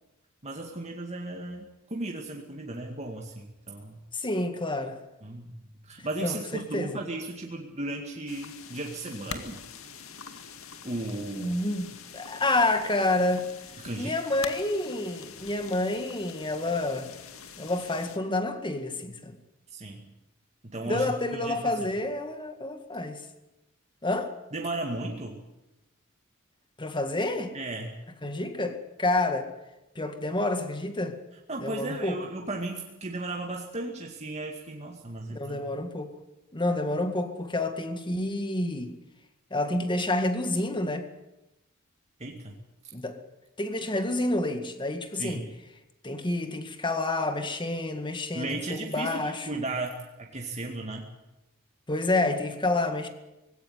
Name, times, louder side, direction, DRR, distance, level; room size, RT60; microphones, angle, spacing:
voice 1, 0.4-1.6 1.9-4.0 5.2-5.5 5.8-9.6 10.8-11.6 13.8-14.2 19.7-20.1 20.6-21.9 24.5-25.4 27.5-28.0 31.5-35.6 42.2-42.5 45.1-45.5 48.3-51.1, right 2 dB, 30° right, 1 dB, 2.1 m, -35 dB
voice 2, 4.1-5.0 6.2-6.9 11.4-13.5 14.0-17.1 17.6-19.4 20.9-23.2 24.0-24.3 26.8-27.5 28.2-29.5 30.0-31.2 31.6-32.2 35.3-36.1 36.5-38.9 39.5-41.0 42.9-43.2 43.6-45.4 46.0-49.5 51.9-53.1, left 2 dB, 25° left, 8 dB, 2.0 m, -29 dB
sound 1, 8.3-18.2, left 6 dB, 80° left, 2.1 m, -44 dB
20.0 x 16.5 x 9.4 m, 0.95 s
head